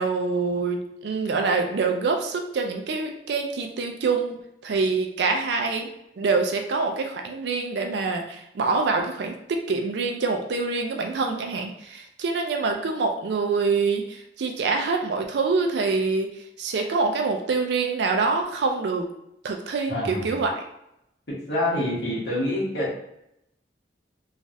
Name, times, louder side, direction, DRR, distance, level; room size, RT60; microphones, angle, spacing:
voice 1, 0.0-4.4 4.6-5.9 6.2-16.3 16.6-19.1 19.4-20.6, right 4 dB, 70° right, 4 dB, 0.4 m, -25 dB
voice 2, 19.9-20.4 21.3-23.0, left 1 dB, 70° left, -7 dB, 1.3 m, -27 dB
3.1 x 2.4 x 2.6 m, 0.81 s
head